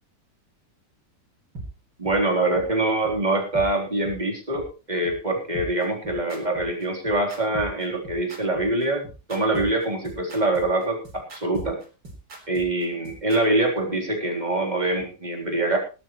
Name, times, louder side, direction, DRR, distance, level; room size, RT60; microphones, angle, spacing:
sound 1, 1.6-1.7 2.0-2.2 2.5-2.6 3.1-3.2 3.5-3.7 4.0-4.2 4.5-4.6 5.1-5.2 5.5-13.4, right 2 dB, 80° right, 4.6 m, -39 dB
voice 1, 2.0-11.8 12.5-15.8, right 2 dB, 20° right, 1 dB, 3.7 m, -24 dB
18.5 x 13.0 x 3.1 m, 0.33 s
omnidirectional pair, 1.9 m